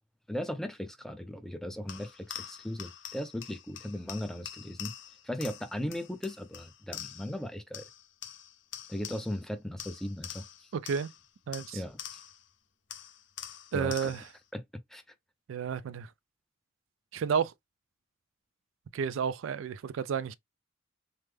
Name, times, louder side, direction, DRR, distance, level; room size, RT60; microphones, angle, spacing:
voice 1, 0.3-4.9 5.2-7.9 8.9-10.4 11.7-12.2 13.7-14.2 14.5-14.6 14.9-15.0, left 1 dB, ahead, 0.5 m, -37 dB
sound 1, 1.9-7.4 7.7-9.5 9.8-12.5 12.9-14.4, left 10 dB, 65° left, 0.6 m, -45 dB
voice 2, 10.7-11.1 11.5-11.8 13.7-14.2 15.5-16.1 17.1-17.5 18.9-20.3, right 6 dB, 80° right, 0.3 m, -31 dB
3.3 x 2.1 x 3.3 m
head